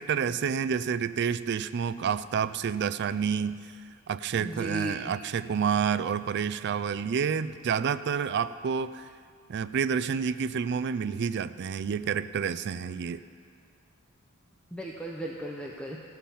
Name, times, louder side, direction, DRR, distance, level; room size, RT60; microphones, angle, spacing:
voice 1, 0.0-3.6 4.1-9.0 9.5-13.2, right 7 dB, 50° right, 14 dB, 0.3 m, -29 dB
voice 2, 4.4-5.1 14.7-16.0, right 1 dB, 5° left, -2 dB, 0.7 m, -36 dB
16.5 x 5.8 x 7.0 m, 2.2 s
head